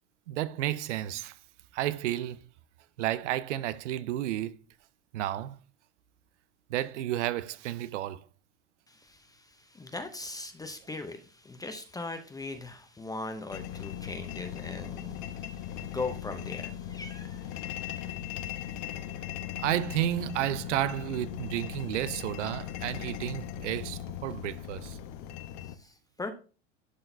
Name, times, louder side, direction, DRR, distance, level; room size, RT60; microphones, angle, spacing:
voice 1, 0.3-1.3 1.7-2.4 3.0-4.6 5.1-5.6 6.7-8.2 19.6-25.0, right 13 dB, 75° right, 0.6 m, -31 dB
voice 2, 8.9-18.2 18.6-18.9 25.8-26.3, left 3 dB, 10° left, 0.6 m, -40 dB
sound 1, 13.5-25.8, left 11 dB, 55° left, 0.8 m, -39 dB
11.5 x 3.8 x 2.6 m
hypercardioid pair, 105°, 36 cm